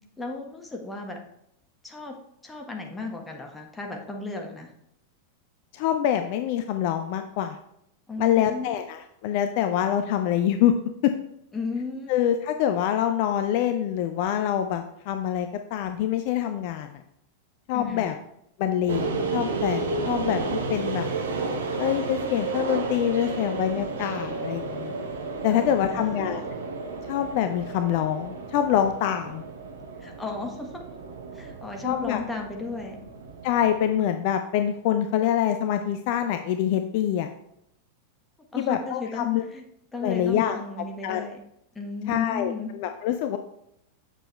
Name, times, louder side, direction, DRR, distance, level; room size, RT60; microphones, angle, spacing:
voice 1, 0.2-1.2 1.8-2.1 2.4-4.7 8.1-8.7 11.5-12.1 17.7-18.1 25.5-26.4 30.0-30.7 31.3-33.0 38.5-39.6 39.9-41.4 41.7-42.7, left 3 dB, 10° left, 1 dB, 1.4 m, -34 dB
voice 2, 5.7-7.6 8.2-10.8 11.0-11.1 12.1-17.0 17.7-18.1 18.6-21.1 21.8-24.9 25.4-26.4 27.1-29.4 31.8-32.2 33.4-37.3 38.6-39.4 40.0-40.6 41.0-41.3 42.1-43.4, left 10 dB, 45° left, 7 dB, 0.5 m, -25 dB
sound 1, 18.9-34.1, right 3 dB, 65° right, 1.0 m, -32 dB
7.5 x 6.6 x 3.1 m, 0.75 s
figure-of-eight pair, 90°, 0 cm